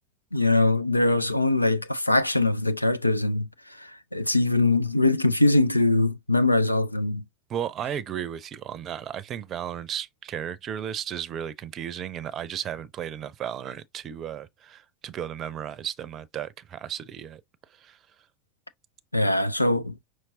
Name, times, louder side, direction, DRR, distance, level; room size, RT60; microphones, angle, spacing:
voice 1, 0.3-3.5 3.8-7.2 19.1-20.0, left 2 dB, 90° left, 0.4 m, -22 dB
voice 2, 7.5-17.4 17.8-18.0, right 9 dB, 35° right, 0.6 m, -34 dB
5.9 x 3.0 x 2.7 m
figure-of-eight pair, 80°, 0 cm